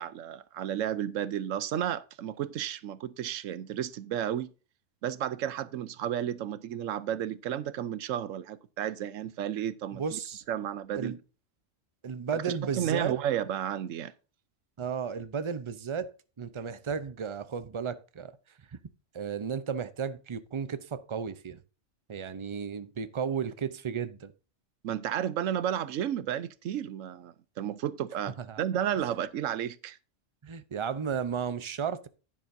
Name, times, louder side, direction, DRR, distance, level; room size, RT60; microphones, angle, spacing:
voice 1, 0.0-4.5 5.0-10.2 10.5-11.2 12.3-14.1 24.8-30.0, right 10 dB, 90° right, 1.1 m, -32 dB
voice 2, 9.9-10.4 10.9-11.2 12.0-13.1 14.8-18.4 19.1-21.6 22.1-24.3 28.4-28.6 30.4-32.1, right 6 dB, 35° right, 0.5 m, -34 dB
10.5 x 9.8 x 2.6 m
omnidirectional pair, 1.3 m